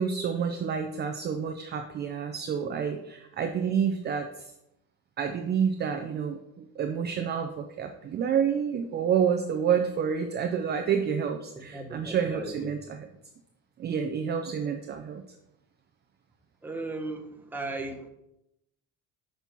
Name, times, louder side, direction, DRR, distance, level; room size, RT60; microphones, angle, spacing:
voice 1, 0.0-4.3 5.2-12.8 13.8-15.2, right 7 dB, 30° right, 6 dB, 0.4 m, -28 dB
voice 2, 11.6-12.8 16.6-18.1, right 2 dB, 5° right, 2 dB, 0.8 m, -37 dB
6.0 x 5.4 x 4.4 m, 0.85 s
cardioid pair, 145°, 37 cm